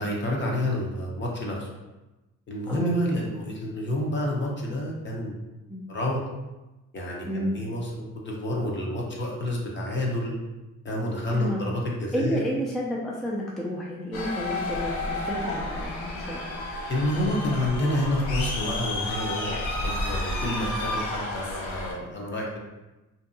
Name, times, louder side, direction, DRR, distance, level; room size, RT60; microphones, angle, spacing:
voice 1, 0.0-1.7 2.5-5.3 5.9-6.2 6.9-10.3 10.8-12.4 16.9-22.6, left 1 dB, 40° left, -2 dB, 0.7 m, -29 dB
voice 2, 7.3-7.6 11.3-11.6 12.1-16.4, equal, ahead, -4 dB, 0.3 m, -31 dB
sound 1, 14.1-21.9, left 2 dB, 85° left, 0.6 m, -31 dB
2.6 x 2.2 x 2.5 m, 1.1 s
cardioid pair, 90°, 30 cm